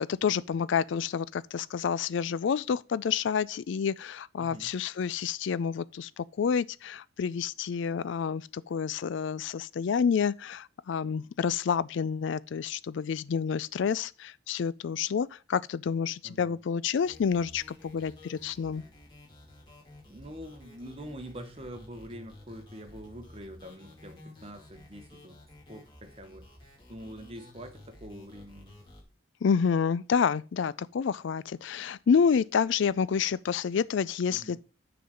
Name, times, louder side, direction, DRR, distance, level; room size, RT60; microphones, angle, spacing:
voice 1, 0.0-18.8 29.4-34.6, left 6 dB, 60° left, 0.3 m, -29 dB
voice 2, 4.4-4.7 16.2-16.6 20.1-25.4 25.7-26.5 26.9-28.8 34.3-34.6, equal, 30° right, 1.0 m, -45 dB
sound 1, 17.0-29.0, left 1 dB, 20° left, 2.4 m, -52 dB
6.7 x 4.0 x 6.3 m
head